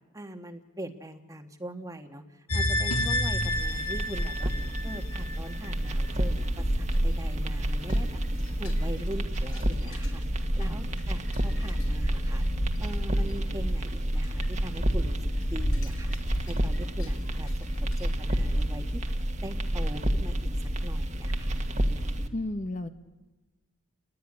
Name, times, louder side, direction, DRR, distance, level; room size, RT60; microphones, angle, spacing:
voice 1, 0.1-4.5 4.8-8.2 8.6-10.2 10.5-12.4 12.8-15.1 15.5-17.5 18.0-19.0 19.4-20.4 20.8-21.6, right 1 dB, 15° right, 6 dB, 1.5 m, -41 dB
sound 1, 2.5-5.7 6.1-6.2, left 1 dB, 85° left, 2.7 m, -29 dB
sound 2, 3.0-22.3, equal, 30° right, 1.5 m, -29 dB
sound 3, 5.8-18.6, equal, 60° left, 4.7 m, -35 dB
voice 2, 10.6-10.9 22.3-22.9, left 1 dB, 35° left, 8 dB, 1.0 m, -33 dB
30.0 x 19.0 x 9.9 m, 1.2 s
head